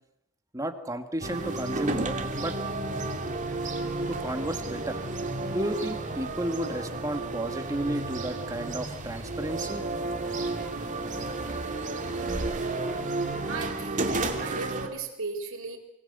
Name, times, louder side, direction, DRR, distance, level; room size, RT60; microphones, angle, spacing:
voice 1, 0.5-2.5 4.1-5.0 5.5-9.8, right 1 dB, 15° right, 7 dB, 1.9 m, -32 dB
sound 1, 1.2-14.9, right 2 dB, 35° right, 2.5 m, -32 dB
voice 2, 13.5-14.0 14.3-15.8, right 4 dB, 65° right, 6 dB, 4.1 m, -36 dB
24.0 x 19.0 x 8.1 m, 0.82 s
head